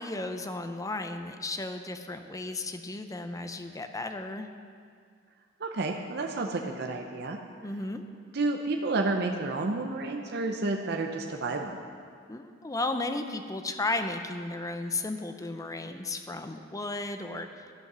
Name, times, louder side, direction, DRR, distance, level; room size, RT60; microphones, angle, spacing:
voice 1, 0.0-4.5 7.6-8.0 12.3-17.5, left 2 dB, 20° left, 7 dB, 0.6 m, -34 dB
voice 2, 5.6-7.4 8.3-11.8, right 3 dB, 60° right, 2 dB, 0.7 m, -30 dB
12.0 x 8.3 x 6.1 m, 2.1 s
head